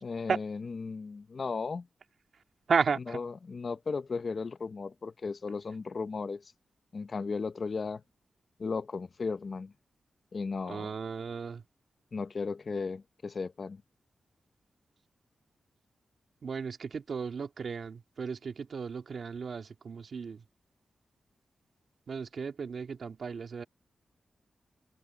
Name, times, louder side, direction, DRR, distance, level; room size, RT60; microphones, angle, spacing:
voice 1, 0.0-1.9 3.1-6.4 6.9-8.0 8.6-9.7 10.3-10.9 12.1-13.8, left 4 dB, 45° left, 0.9 m, -35 dB
voice 2, 2.7-3.2 10.7-11.6 16.4-20.4 22.1-23.6, right 5 dB, 60° right, 2.2 m, -34 dB
wide cardioid pair, 125°, 0 cm